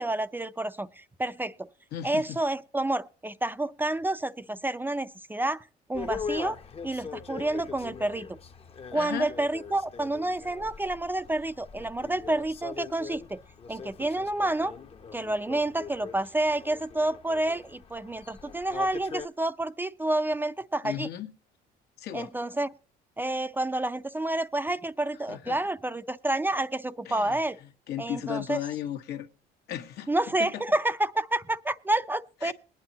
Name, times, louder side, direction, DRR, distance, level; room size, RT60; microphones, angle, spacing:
voice 1, 0.0-1.7 2.0-6.6 6.8-8.3 8.9-13.4 13.7-14.7 15.1-21.1 22.1-22.7 23.2-27.6 28.0-28.6 30.1-32.5, right 2 dB, 10° right, 0.5 m, -29 dB
voice 2, 1.9-2.4 8.9-9.3 20.8-21.3 22.0-22.3 25.3-25.6 27.1-27.4 27.9-29.3 29.7-30.1 30.4-30.5 32.4-32.5, left 11 dB, 75° left, 1.3 m, -35 dB
sound 1, 5.9-19.3, left 6 dB, 35° left, 0.8 m, -41 dB
21.5 x 9.7 x 2.9 m
cardioid pair, 110°, 17 cm